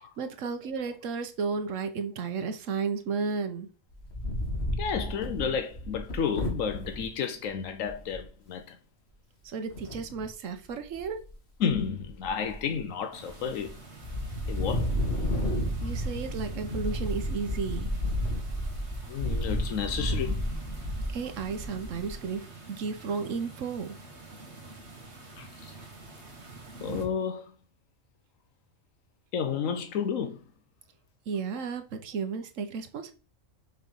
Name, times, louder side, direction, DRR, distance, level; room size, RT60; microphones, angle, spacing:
voice 1, 0.2-3.7 9.4-11.2 15.8-17.9 21.1-23.9 31.3-33.1, right 5 dB, 75° right, 1.2 m, -33 dB
Wind, 3.9-7.0 7.6-7.7 7.9-8.2 9.7-10.3 10.8-11.3 11.6-12.8 13.3-13.7 14.0-22.2, equal, 55° left, 2.2 m, -32 dB
voice 2, 4.8-8.8 11.6-13.7 14.5-14.9 19.1-20.4 25.4-25.7 26.8-27.5 29.3-30.4, left 7 dB, 80° left, 1.1 m, -31 dB
sound 1, 13.1-27.0, right 3 dB, 55° right, 1.9 m, -45 dB
6.6 x 4.5 x 5.3 m
omnidirectional pair, 1.3 m